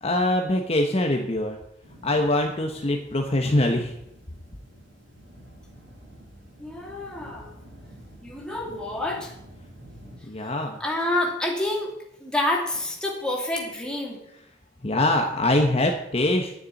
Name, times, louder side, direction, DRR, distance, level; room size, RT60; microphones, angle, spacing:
voice 1, 0.0-1.6 2.0-3.9 10.3-10.8 14.8-16.5, left 1 dB, 35° left, 3 dB, 1.1 m, -23 dB
sound 1, 1.8-10.2, right 1 dB, 75° right, 6.4 m, -48 dB
voice 2, 6.6-7.5 8.2-9.3 10.8-11.9 12.2-14.2, left 1 dB, 5° left, -2 dB, 2.8 m, -28 dB
9.9 x 7.0 x 9.2 m, 0.79 s
head